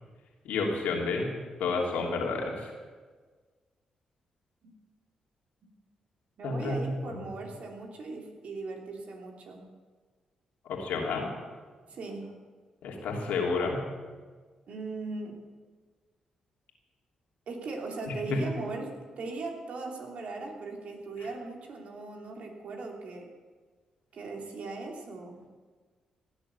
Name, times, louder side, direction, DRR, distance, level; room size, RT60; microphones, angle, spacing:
voice 1, 0.4-1.3 1.6-2.7 6.4-7.2 10.6-11.3 12.8-13.8 18.1-18.4, left 3 dB, 75° left, 0 dB, 3.0 m, -30 dB
voice 2, 6.4-9.6 11.9-12.4 14.7-15.4 17.5-23.3 24.1-25.4, right 3 dB, 60° right, 1 dB, 3.1 m, -39 dB
17.5 x 10.0 x 6.9 m, 1.4 s
hypercardioid pair, 40°, 2 cm